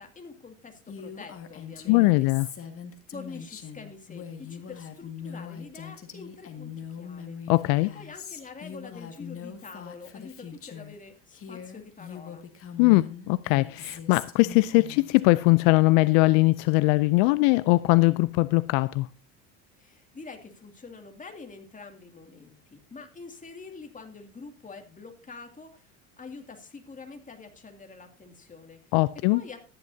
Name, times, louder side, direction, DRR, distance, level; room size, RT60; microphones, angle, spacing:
voice 1, 0.0-2.3 3.1-6.7 7.0-7.4 7.9-12.4 19.8-28.9 29.3-29.6, left 4 dB, 20° left, 2.5 m, -46 dB
Female speech woman speaking, 0.9-11.0 11.3-15.2, left 7 dB, 35° left, 2.0 m, -41 dB
voice 2, 1.9-2.5 7.5-7.9 12.8-19.1 28.9-29.4, left 22 dB, 70° left, 0.5 m, -21 dB
14.5 x 10.5 x 2.8 m
supercardioid pair, 95°, 36 cm